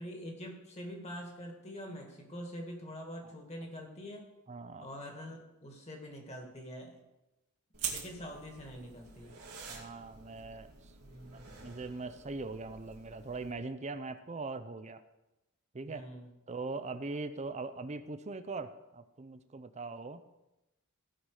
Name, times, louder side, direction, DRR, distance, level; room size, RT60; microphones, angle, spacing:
voice 1, 0.0-4.3 4.8-7.0 7.9-9.3 11.0-11.5 15.9-16.3, equal, 30° left, 2 dB, 1.9 m, -45 dB
voice 2, 4.5-4.9 9.7-10.7 11.3-15.0 15.7-16.0 16.5-20.2, right 3 dB, 30° right, 11 dB, 0.6 m, -41 dB
sound 1, 7.7-13.5, right 7 dB, 85° right, 2.2 m, -45 dB
16.0 x 5.9 x 4.9 m, 0.97 s
head